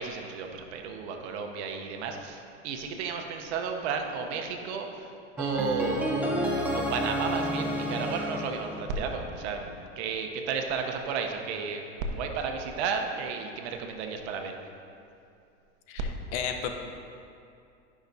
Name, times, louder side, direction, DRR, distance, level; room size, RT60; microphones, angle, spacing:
voice 1, 0.0-11.9 12.1-14.5, right 5 dB, 60° right, 4 dB, 1.0 m, -33 dB
sound 1, 5.4-9.4, equal, 5° right, 0.7 m, -30 dB
voice 2, 15.9-16.7, left 8 dB, 65° left, 5 dB, 0.9 m, -33 dB
11.5 x 5.9 x 2.8 m, 2.5 s
hypercardioid pair, 120°, 38 cm